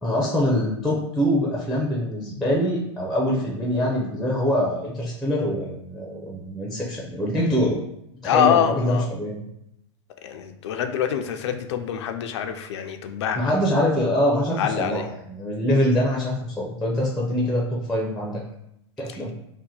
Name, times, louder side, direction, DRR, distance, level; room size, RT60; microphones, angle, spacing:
voice 1, 0.0-7.8 8.2-9.4 13.4-18.4 19.0-19.3, equal, ahead, -3 dB, 0.6 m, -24 dB
voice 2, 8.2-9.1 10.2-13.6 14.5-15.1, left 9 dB, 75° left, 7 dB, 0.4 m, -25 dB
2.8 x 2.1 x 3.8 m, 0.79 s
hypercardioid pair, 120°, 14 cm